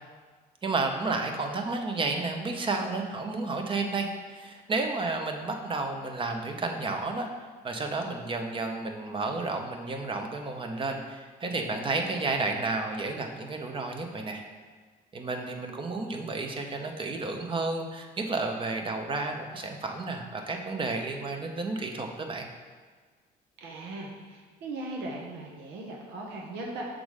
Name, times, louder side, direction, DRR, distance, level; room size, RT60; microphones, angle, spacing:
voice 1, 0.6-14.4 15.1-22.5, right 3 dB, 30° right, 4 dB, 0.8 m, -32 dB
voice 2, 23.6-26.9, right 2 dB, 85° right, -2 dB, 1.1 m, -38 dB
6.3 x 3.8 x 4.8 m, 1.5 s
cardioid pair, 110°, 17 cm